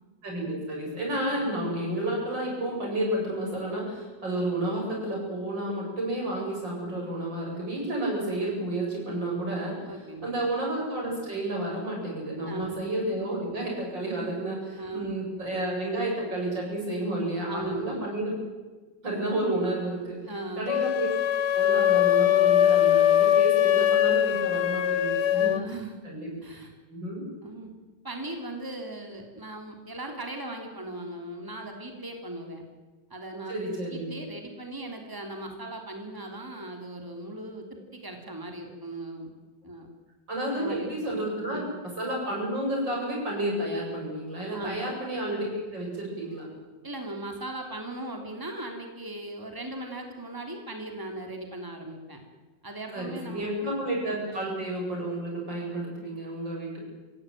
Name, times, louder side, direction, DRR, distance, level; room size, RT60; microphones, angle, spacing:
voice 1, 0.2-9.8 10.2-18.4 19.0-20.2 20.6-21.1 21.6-25.6 26.0-26.3 26.9-27.3 33.5-34.1 40.3-46.5 52.9-56.8, right 1 dB, 90° right, -2 dB, 8.9 m, -31 dB
voice 2, 9.9-10.4 12.5-12.9 14.8-15.4 17.5-18.1 20.3-20.8 25.3-26.0 26.4-26.7 27.4-27.7 28.0-32.6 33.1-33.6 33.9-39.3 39.6-39.9 40.5-41.1 41.5-41.7 44.5-44.8 46.8-52.2 52.6-53.7, right 1 dB, 10° right, 3 dB, 3.2 m, -38 dB
sound 1, 20.7-25.6, left 11 dB, 65° left, 1.4 m, -22 dB
25.0 x 16.5 x 9.3 m, 1.3 s
omnidirectional pair, 1.9 m